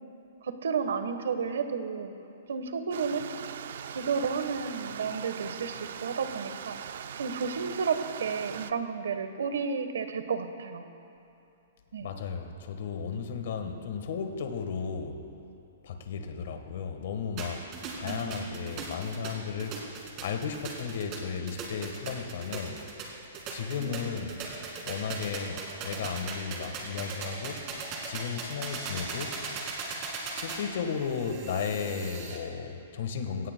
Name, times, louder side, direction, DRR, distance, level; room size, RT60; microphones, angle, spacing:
voice 1, 0.4-2.1 2.5-3.3 3.9-6.8 7.2-10.9 11.9-12.1 18.0-18.8 23.8-24.2, right 5 dB, 85° right, 8 dB, 1.1 m, -32 dB
Stream, 2.9-8.7, right 8 dB, 60° right, 0.5 m, -41 dB
voice 2, 12.0-15.2 15.8-17.6 17.9-19.8 20.2-22.8 23.5-24.4 24.8-27.6 28.0-29.4 30.3-33.5, left 6 dB, 55° left, 6 dB, 1.3 m, -34 dB
sound 1, 17.4-32.4, right 4 dB, 30° right, 2.0 m, -39 dB
22.0 x 17.5 x 2.2 m, 2.7 s
hypercardioid pair, 165°, 0 cm